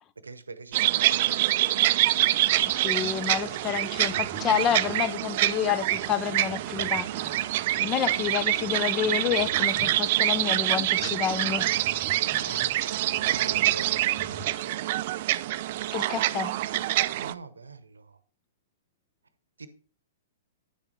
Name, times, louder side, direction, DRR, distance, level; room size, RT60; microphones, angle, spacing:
voice 1, 0.2-1.8 7.7-7.9 12.3-14.8 17.2-18.2 19.6-19.7, right 4 dB, 85° right, 0.8 m, -44 dB
sound 1, 0.7-17.3, right 15 dB, 50° right, 0.4 m, -26 dB
sound 2, 2.4-14.6, right 5 dB, 25° right, 0.8 m, -45 dB
voice 2, 2.7-7.1 7.8-11.7 15.9-16.5, left 9 dB, 30° left, 0.5 m, -29 dB
9.8 x 6.5 x 3.1 m
figure-of-eight pair, 115°, 0 cm